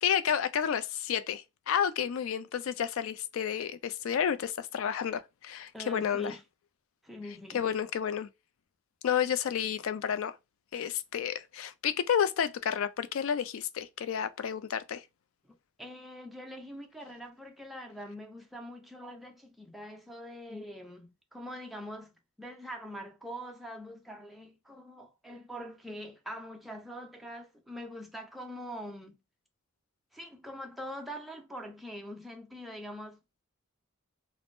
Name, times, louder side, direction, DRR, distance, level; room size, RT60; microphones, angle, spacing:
voice 1, 0.0-6.3 7.5-8.3 9.0-10.4 10.7-15.0, left 8 dB, 70° left, 0.3 m, -31 dB
voice 2, 5.7-6.4 7.0-7.7 15.4-29.2 30.1-33.4, equal, ahead, 0.5 m, -43 dB
3.4 x 2.0 x 2.5 m
head